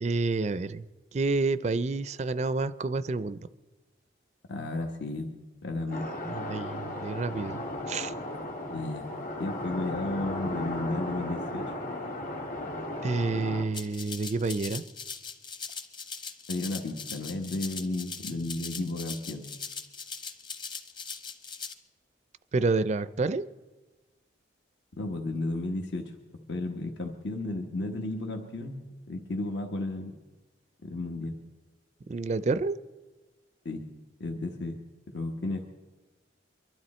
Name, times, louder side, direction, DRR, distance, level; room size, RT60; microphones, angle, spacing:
voice 1, 0.0-0.8 1.1-3.4 6.2-8.1 13.0-14.8 22.5-23.4 32.1-32.8, right 3 dB, 35° right, 14 dB, 0.4 m, -29 dB
voice 2, 4.5-5.3 5.6-6.1 8.7-9.1 9.4-11.7 16.5-19.4 25.0-26.1 26.5-28.8 29.1-30.1 30.8-31.4 33.6-33.9 34.2-34.8 35.1-35.7, left 2 dB, 70° left, 3 dB, 1.2 m, -33 dB
sound 1, 5.9-13.6, left 1 dB, 45° left, 1.8 m, -35 dB
Rattle (instrument), 13.7-21.7, left 5 dB, 25° left, 0.9 m, -40 dB
23.5 x 12.5 x 4.3 m, 1.2 s
head